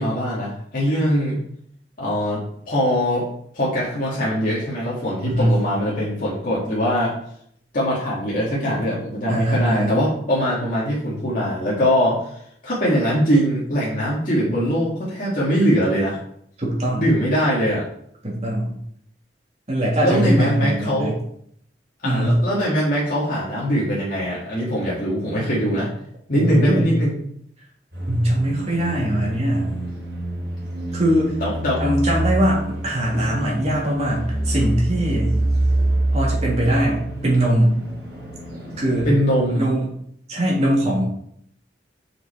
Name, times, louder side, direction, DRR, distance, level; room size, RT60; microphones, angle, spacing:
voice 1, 0.0-1.4 2.0-2.4 2.7-3.2 3.5-7.1 7.7-12.3 12.6-16.2 17.0-17.9 20.0-21.1 22.0-25.9 26.3-27.2 31.4-31.8 39.0-39.7, equal, 50° left, -7 dB, 2.1 m, -22 dB
voice 2, 9.3-9.9 16.6-17.1 18.2-18.7 19.7-21.2 22.0-22.4 26.3-27.0 28.1-29.8 30.9-31.3 31.8-35.3 36.1-37.8 38.8-39.1 39.5-39.8 40.3-41.0, right 1 dB, 40° right, -4 dB, 3.0 m, -21 dB
sound 1, 27.9-39.0, right 1 dB, 70° right, 3.7 m, -26 dB
6.6 x 6.4 x 4.4 m, 0.67 s
head